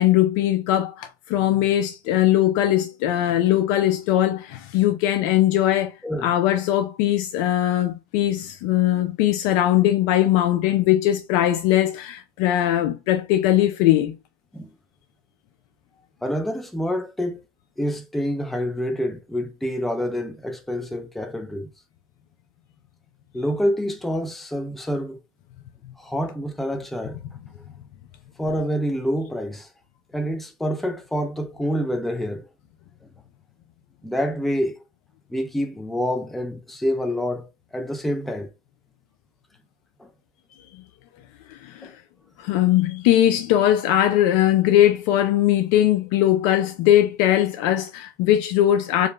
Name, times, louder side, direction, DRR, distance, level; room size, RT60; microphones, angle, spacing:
voice 1, 0.0-5.9 6.2-14.1 40.7-40.8 41.5-41.9 42.4-49.1, left 12 dB, 75° left, 0.4 m, -20 dB
voice 2, 16.2-17.4 17.8-21.7 23.3-25.2 26.0-27.2 28.4-29.7 30.1-32.4 34.0-34.8 35.3-38.5 40.0-40.1 41.8-41.9, equal, ahead, 0.4 m, -27 dB
2.4 x 2.1 x 3.0 m
supercardioid pair, 130°, 12 cm